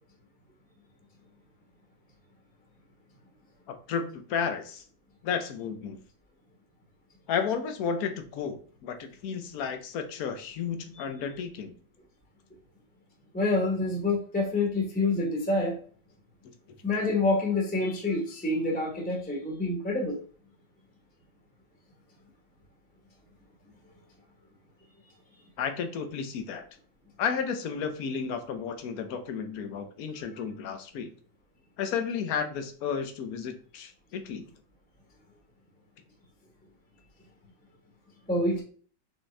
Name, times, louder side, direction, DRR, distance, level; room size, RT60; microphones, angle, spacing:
voice 1, 3.9-4.8 5.2-6.0 7.3-11.7 25.6-26.6 27.2-31.1 31.8-34.5, left 6 dB, 65° left, 7 dB, 1.1 m, -32 dB
voice 2, 13.3-15.8 16.8-20.2 38.3-38.6, left 2 dB, 5° left, -1 dB, 0.9 m, -27 dB
4.3 x 3.6 x 3.2 m, 0.43 s
omnidirectional pair, 1.8 m